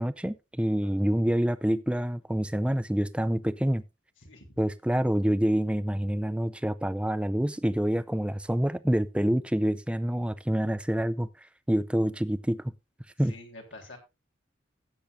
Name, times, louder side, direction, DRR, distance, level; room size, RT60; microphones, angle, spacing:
voice 1, 0.0-3.8 4.6-11.3 11.7-12.6 13.2-13.3, equal, 5° right, 0.5 m, -27 dB
voice 2, 4.2-4.5 13.2-14.0, left 2 dB, 75° left, 3.4 m, -47 dB
15.5 x 8.7 x 2.6 m
head